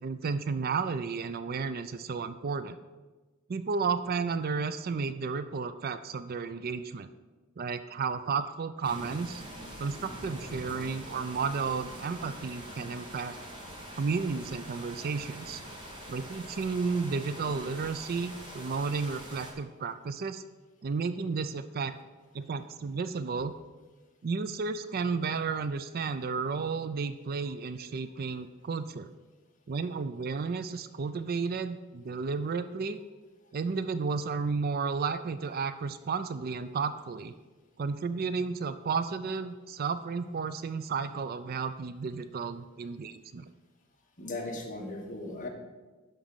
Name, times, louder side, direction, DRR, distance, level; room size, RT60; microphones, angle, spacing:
voice 1, 0.0-2.8 3.5-7.1 7.6-9.4 9.8-13.3 14.0-15.6 16.1-20.4 20.8-21.9 22.3-23.5 24.2-29.1 29.7-33.0 33.5-37.3 37.8-43.5, right 5 dB, 45° right, 12 dB, 0.4 m, -32 dB
sound 1, 8.8-19.5, equal, 25° right, 2.0 m, -44 dB
voice 2, 44.2-45.5, left 2 dB, 40° left, 0 dB, 1.6 m, -37 dB
11.0 x 3.9 x 7.2 m, 1.2 s
head